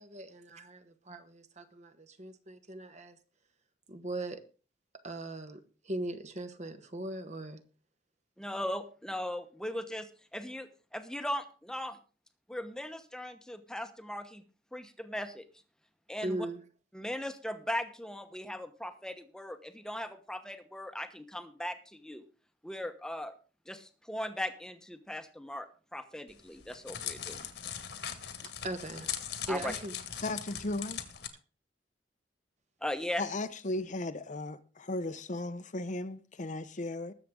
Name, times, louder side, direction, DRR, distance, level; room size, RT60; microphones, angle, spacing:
voice 1, 0.0-3.2 3.9-4.4 5.0-5.6 5.8-7.6 16.2-16.6 28.4-29.9, right 1 dB, 40° right, 1.4 m, -39 dB
voice 2, 8.4-12.0 12.5-14.4 14.7-15.4 16.1-16.5 16.9-22.2 22.6-23.4 23.7-27.5 29.5-29.7 32.8-33.3, left 1 dB, 5° left, 1.1 m, -38 dB
Crackle, 26.3-31.3, left 9 dB, 70° left, 1.7 m, -40 dB
voice 3, 30.2-31.0 33.2-37.1, left 2 dB, 45° left, 0.9 m, -36 dB
20.5 x 7.5 x 3.8 m
head